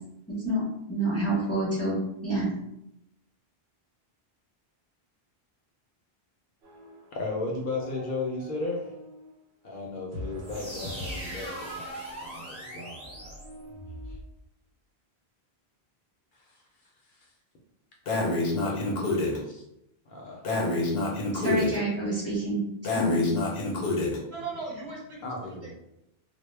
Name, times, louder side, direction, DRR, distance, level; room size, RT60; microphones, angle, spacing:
voice 1, 0.3-0.6 0.9-2.5 21.3-22.6 22.9-23.2, right 1 dB, 20° left, -7 dB, 0.5 m, -27 dB
sound 1, 6.6-7.4 7.6-9.3 10.1-14.2, left 1 dB, 85° right, 0.9 m, -44 dB
voice 2, 7.1-8.9 9.6-11.9 12.2-13.4 16.4-16.6 17.1-17.3 18.6-19.6 20.1-20.5 25.2-25.8, left 3 dB, 60° left, -1 dB, 0.6 m, -35 dB
sound 2, 10.4-14.2, right 1 dB, 15° right, 1.0 m, -40 dB
Breathing, 18.1-19.4 20.4-21.8 22.8-24.2, left 2 dB, 85° left, 0.9 m, -27 dB
voice 3, 24.3-25.8, right 3 dB, 55° right, -4 dB, 0.8 m, -38 dB
2.1 x 2.0 x 3.1 m, 0.82 s
omnidirectional pair, 1.0 m